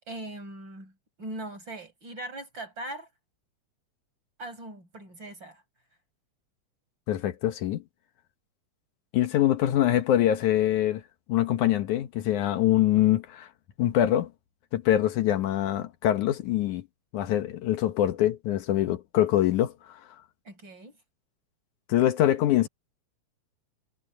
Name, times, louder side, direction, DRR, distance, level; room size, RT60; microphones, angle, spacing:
voice 1, 0.1-0.9 1.2-3.1 4.4-5.6 20.4-21.0, right 1 dB, 35° right, 7.6 m, -40 dB
voice 2, 7.1-7.8 9.1-11.0 11.3-13.5 13.8-14.3 14.7-16.9 17.1-20.0 21.9-22.7, left 12 dB, 75° left, 2.5 m, -24 dB
omnidirectional pair, 3.6 m